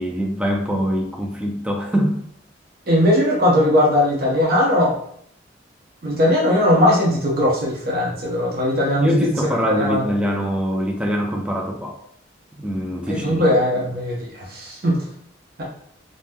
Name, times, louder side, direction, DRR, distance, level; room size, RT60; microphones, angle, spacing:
voice 1, 0.0-2.3 9.0-12.0 12.6-13.4, equal, 5° right, 1 dB, 0.3 m, -23 dB
voice 2, 2.9-5.0 6.0-9.3 9.8-10.1 13.1-15.0, left 1 dB, 50° right, -4 dB, 0.7 m, -19 dB
2.6 x 2.1 x 3.4 m, 0.67 s
head